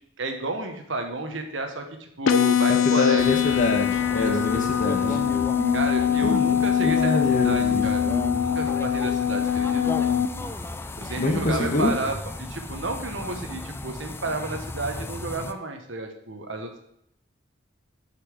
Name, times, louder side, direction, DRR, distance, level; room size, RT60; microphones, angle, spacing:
voice 1, 0.2-3.6 4.1-4.6 5.7-7.2 7.4-9.8 11.0-16.8, right 2 dB, 70° right, 5 dB, 1.3 m, -31 dB
sound 1, 2.3-10.3, left 9 dB, 90° left, 0.7 m, -23 dB
voice 2, 2.7-5.2 6.2-7.9 11.1-11.9, left 2 dB, 40° left, 3 dB, 1.4 m, -25 dB
sound 2, 3.2-15.5, left 2 dB, 10° left, 0.3 m, -36 dB
sound 3, 3.9-11.3, left 1 dB, 50° right, 2.3 m, -37 dB
6.7 x 5.9 x 6.5 m, 0.74 s
head